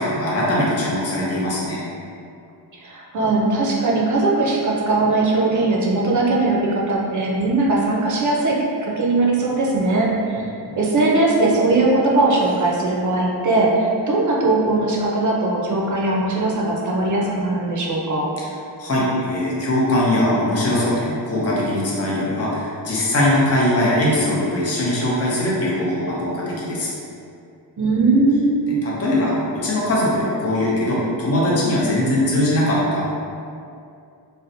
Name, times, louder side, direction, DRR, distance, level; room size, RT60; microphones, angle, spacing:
voice 1, 0.0-1.8 10.4-10.7 18.8-26.9 28.7-33.0, left 1 dB, 35° left, -6 dB, 0.7 m, -21 dB
voice 2, 2.8-8.6 8.8-10.4 10.8-18.3 27.8-28.6, right 2 dB, 45° right, -3 dB, 0.5 m, -19 dB
2.8 x 2.1 x 2.5 m, 2.5 s
cardioid pair, 90°, 44 cm